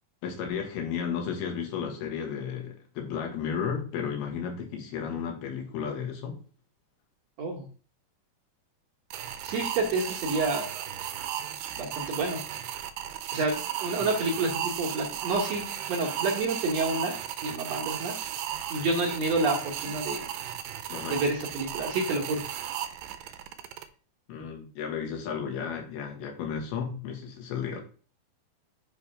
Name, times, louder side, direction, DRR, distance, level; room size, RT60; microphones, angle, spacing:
voice 1, 0.2-6.4 14.0-14.1 20.9-21.2 24.3-27.8, left 7 dB, 85° left, 3.4 m, -33 dB
sound 1, 9.1-23.8, right 11 dB, 80° right, 2.2 m, -35 dB
voice 2, 9.4-10.7 11.8-12.4 13.3-17.1 17.4-18.1 18.7-20.2 21.1-22.4, right 3 dB, 60° right, 1.8 m, -29 dB
8.3 x 3.3 x 5.6 m
omnidirectional pair, 4.4 m